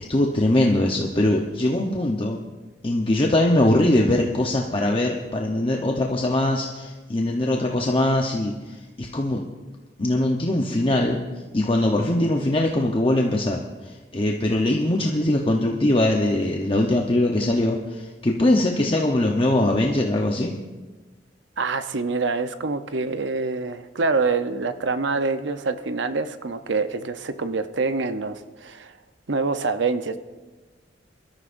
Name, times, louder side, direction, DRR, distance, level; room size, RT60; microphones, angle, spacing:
voice 1, 0.1-2.4 2.8-9.4 10.0-11.2 11.5-20.6, left 1 dB, 30° left, 0 dB, 0.9 m, -22 dB
voice 2, 21.6-28.9 29.3-30.2, right 4 dB, 80° right, 10 dB, 0.8 m, -26 dB
23.5 x 13.5 x 2.6 m, 1.2 s
head